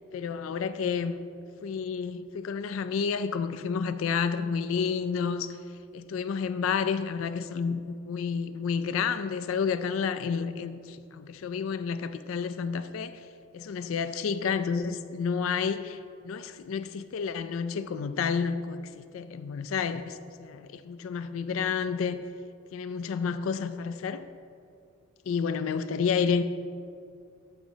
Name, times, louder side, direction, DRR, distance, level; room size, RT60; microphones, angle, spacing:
voice 1, 0.1-1.2 1.6-5.6 5.9-13.2 13.5-22.2 22.7-24.2 25.3-26.4, left 6 dB, 90° left, 11 dB, 0.4 m, -30 dB
12.0 x 8.1 x 2.7 m, 2.4 s
head